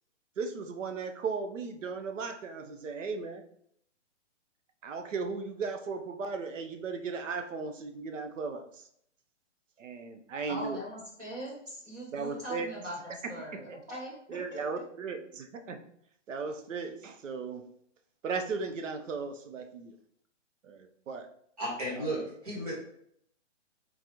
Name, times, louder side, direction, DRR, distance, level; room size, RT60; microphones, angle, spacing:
voice 1, 0.4-3.4 4.8-8.9 9.8-10.8 12.1-12.7 13.2-13.8 14.3-15.8 16.3-17.7 18.2-20.0 20.6-21.3 22.0-22.2, right 4 dB, 90° right, 6 dB, 0.8 m, -36 dB
voice 2, 10.5-14.1 14.5-14.6, equal, 15° right, -7 dB, 0.8 m, -41 dB
voice 3, 21.6-22.7, right 1 dB, 30° right, -4 dB, 1.5 m, -34 dB
3.9 x 3.7 x 2.9 m, 0.69 s
hypercardioid pair, 180°, 37 cm